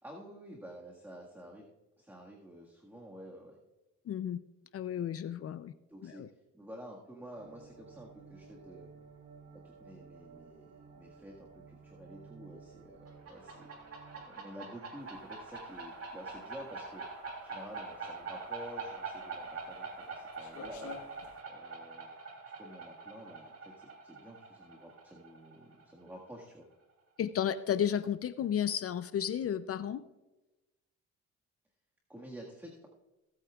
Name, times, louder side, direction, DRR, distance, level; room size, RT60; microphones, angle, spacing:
voice 1, 0.0-1.7 2.0-3.6 5.9-6.2 6.5-8.9 9.6-13.7 14.1-17.0 17.4-21.0 21.5-22.1 22.6-26.7 32.1-32.9, equal, 5° right, -2 dB, 1.7 m, -50 dB
voice 2, 4.1-4.4 4.7-5.7 6.0-6.3 27.2-30.0, left 9 dB, 50° left, 14 dB, 0.5 m, -33 dB
sound 1, 7.3-14.3, right 5 dB, 70° right, 2.9 m, -55 dB
sound 2, 13.1-26.4, right 4 dB, 50° right, 3.1 m, -44 dB
sound 3, 15.0-21.4, left 4 dB, 70° left, 1.4 m, -52 dB
18.0 x 8.6 x 2.4 m, 1.0 s
cardioid pair, 90°, 30 cm